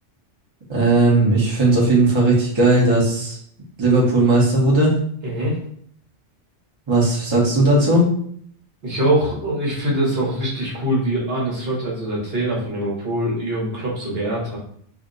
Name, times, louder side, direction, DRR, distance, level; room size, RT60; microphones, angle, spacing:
voice 1, 0.7-3.4 3.8-5.0 6.9-8.0, right 2 dB, 25° right, -4 dB, 0.7 m, -16 dB
voice 2, 5.2-5.6 8.8-14.6, right 1 dB, 55° right, -4 dB, 1.1 m, -23 dB
2.7 x 2.1 x 3.6 m, 0.62 s
omnidirectional pair, 1.3 m